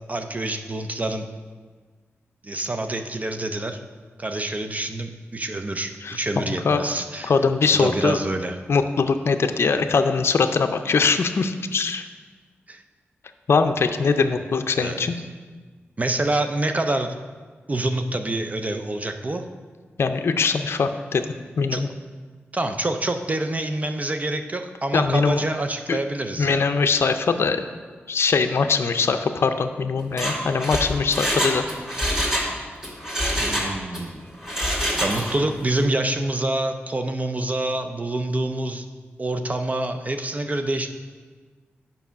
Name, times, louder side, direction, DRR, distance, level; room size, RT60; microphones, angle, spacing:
voice 1, 0.1-1.3 2.4-3.8 4.2-7.3 7.7-8.6 12.7-12.8 14.7-15.1 16.0-17.2 17.7-19.4 21.7-21.8 22.5-26.6 33.4-34.2 35.0-38.9 39.2-40.9, right 2 dB, 35° right, 7 dB, 0.5 m, -26 dB
voice 2, 6.0-6.8 7.2-8.2 8.7-12.1 13.5-15.1 20.0-21.3 21.6-21.9 24.9-25.4 25.9-26.0 26.4-27.6 28.1-31.6, left 5 dB, 65° left, 7 dB, 0.5 m, -22 dB
Mechanisms, 30.0-32.5 32.8-34.0 34.4-35.5 35.8-35.9, equal, 15° right, 2.2 m, -25 dB
7.0 x 5.4 x 5.7 m, 1.5 s
cardioid pair, 60°, 5 cm